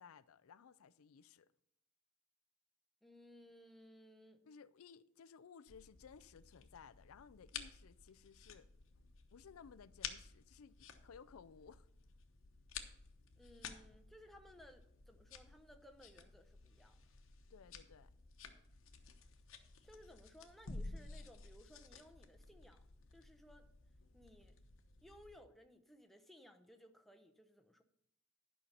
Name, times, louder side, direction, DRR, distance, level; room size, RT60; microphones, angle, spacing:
voice 1, 0.0-1.5 4.4-8.7 9.3-11.9 17.5-18.1, left 6 dB, 90° left, 0.4 m, -59 dB
voice 2, 3.0-4.4 13.4-17.0 19.8-22.8 23.1-23.7 24.1-24.5 25.0-27.8, equal, ahead, 0.8 m, -61 dB
sound 1, 5.7-25.4, left 5 dB, 70° left, 1.1 m, -53 dB
11.0 x 5.6 x 6.6 m
head